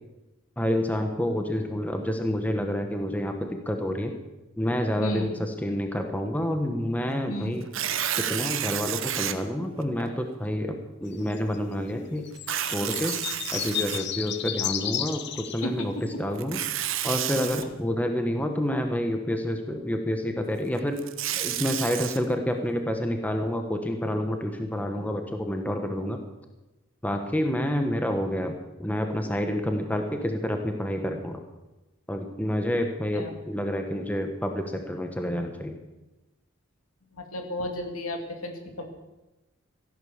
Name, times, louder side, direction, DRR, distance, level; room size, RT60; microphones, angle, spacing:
voice 1, 0.6-4.1 4.6-7.7 8.1-12.3 12.7-13.2 13.5-15.9 16.2-16.6 17.0-21.0 21.4-26.2 27.0-31.4 32.1-35.8, equal, 5° left, 5 dB, 1.1 m, -28 dB
voice 2, 5.0-5.3 7.3-7.6 15.6-16.0 33.1-33.3 37.1-38.9, left 1 dB, 80° left, 4 dB, 2.5 m, -34 dB
Tearing, 7.6-9.3 10.0-10.1 12.3-14.5 16.3-17.6 20.8-22.2, right 11 dB, 60° right, 0.9 m, -30 dB
sound 1, 11.1-11.6 12.2-15.6 16.0-16.1, left 11 dB, 50° left, 0.8 m, -32 dB
15.0 x 11.5 x 7.2 m, 1.0 s
head